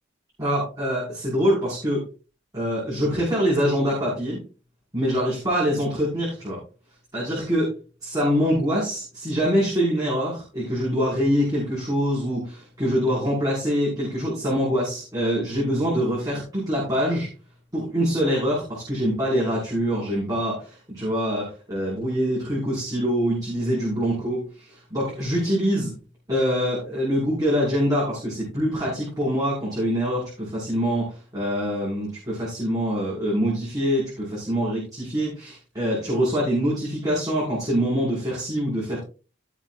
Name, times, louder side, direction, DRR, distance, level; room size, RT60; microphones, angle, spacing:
voice 1, 0.4-2.1 2.5-4.4 4.9-6.6 7.1-17.3 17.7-25.9 26.3-39.0, equal, 20° right, -7 dB, 5.8 m, -24 dB
17.5 x 7.4 x 2.6 m, 0.34 s
head